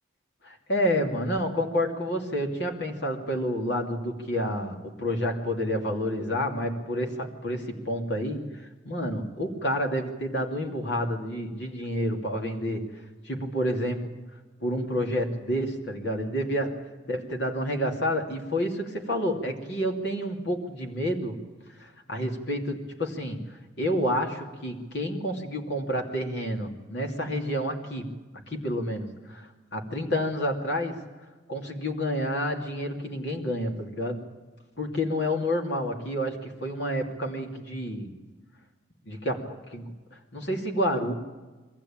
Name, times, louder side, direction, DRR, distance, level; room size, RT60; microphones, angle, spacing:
voice 1, 0.4-12.8 13.2-14.1 14.6-16.7 17.1-21.4 21.8-28.1 28.5-31.0 31.5-34.2 34.8-38.2 39.1-39.9 40.3-41.1, equal, 60° left, 2 dB, 2.9 m, -29 dB
23.0 x 15.0 x 8.8 m, 1.3 s
head